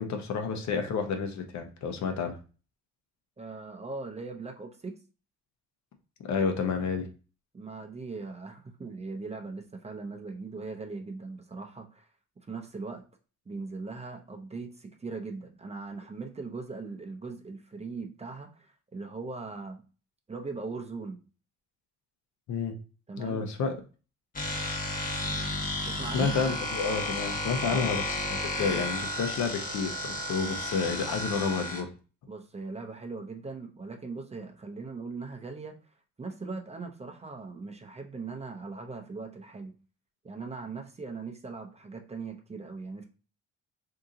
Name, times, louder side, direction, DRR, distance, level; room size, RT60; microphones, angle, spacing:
voice 1, 0.0-2.4 6.2-7.1 22.5-22.7 23.2-23.7 26.1-31.9, left 5 dB, 65° left, 5 dB, 0.8 m, -30 dB
voice 2, 3.4-5.0 7.5-12.1 12.5-13.0 13.5-19.8 20.3-21.2 23.1-23.5 25.9-26.3 27.6-27.9 32.3-35.7 36.2-39.7 40.2-43.1, right 4 dB, 20° right, 4 dB, 0.7 m, -39 dB
sound 1, 24.3-31.8, left 1 dB, 30° left, 1.0 m, -33 dB
2.8 x 2.6 x 3.7 m, 0.35 s
cardioid pair, 90°, 30 cm